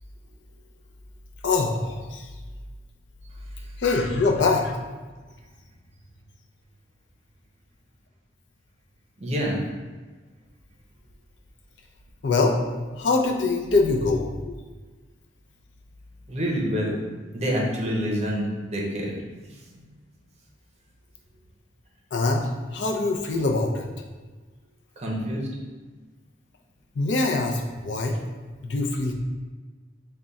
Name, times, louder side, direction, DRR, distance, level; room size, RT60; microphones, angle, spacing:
voice 1, 1.4-2.3 3.8-4.8 12.2-12.6 12.9-14.6 22.1-24.1 26.9-28.2 28.6-29.1, left 3 dB, 70° left, 1 dB, 0.5 m, -24 dB
voice 2, 9.2-9.6 16.3-17.0 17.3-19.1 19.4-19.8 25.0-25.5, equal, 35° right, -2 dB, 0.7 m, -27 dB
3.5 x 2.2 x 4.0 m, 1.4 s
head